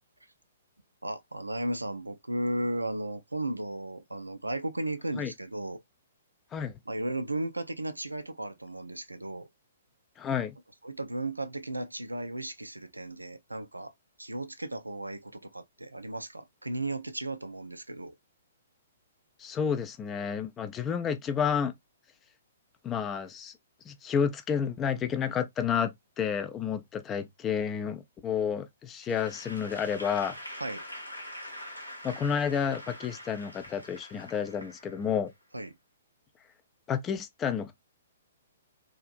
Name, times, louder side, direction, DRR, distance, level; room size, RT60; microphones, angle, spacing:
voice 1, 1.0-5.8 6.9-9.5 10.8-13.9 14.2-18.1 30.6-30.8 35.5-35.7, right 1 dB, 80° right, 0.4 m, -35 dB
voice 2, 10.2-10.6 19.4-21.7 22.8-23.5 23.9-30.4 32.0-35.3 36.9-37.7, left 7 dB, 20° left, 0.4 m, -30 dB
Applause / Crowd, 29.0-35.4, equal, 85° left, 1.0 m, -44 dB
2.8 x 2.4 x 2.4 m
figure-of-eight pair, 115°, 0 cm